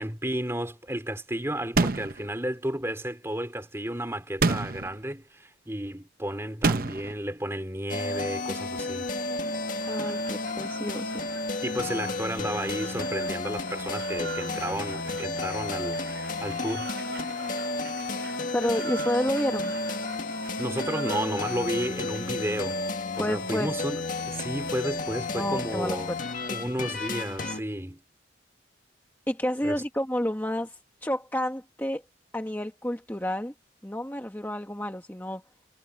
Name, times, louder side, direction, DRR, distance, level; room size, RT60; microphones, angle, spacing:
voice 1, 0.0-9.1 11.6-16.9 20.6-22.8 23.2-26.1 26.5-28.0 29.6-29.8, right 1 dB, 15° right, 3.1 m, -32 dB
sound 1, 1.8-2.3 4.4-4.9 6.6-7.1, right 3 dB, 50° right, 0.8 m, -25 dB
sound 2, 7.9-27.6, left 3 dB, 45° left, 1.9 m, -32 dB
Applause, 9.5-23.2, right 5 dB, 70° right, 3.1 m, -44 dB
voice 2, 9.9-11.2 18.5-19.7 23.1-23.7 25.3-26.2 29.3-32.0 32.3-33.5 33.8-35.4, left 1 dB, 10° left, 1.3 m, -30 dB
head